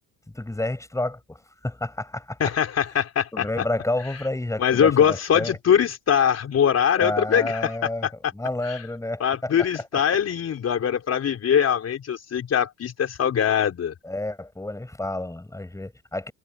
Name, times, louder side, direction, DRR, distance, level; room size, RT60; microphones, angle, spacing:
voice 1, 0.3-2.4 3.3-5.6 7.0-9.9 14.0-16.3, left 2 dB, 10° left, 7.1 m, -30 dB
voice 2, 2.4-3.6 4.6-7.8 8.0-8.1 8.7-8.8 9.2-13.9, left 8 dB, 45° left, 4.1 m, -22 dB
supercardioid pair, 95°, 36 cm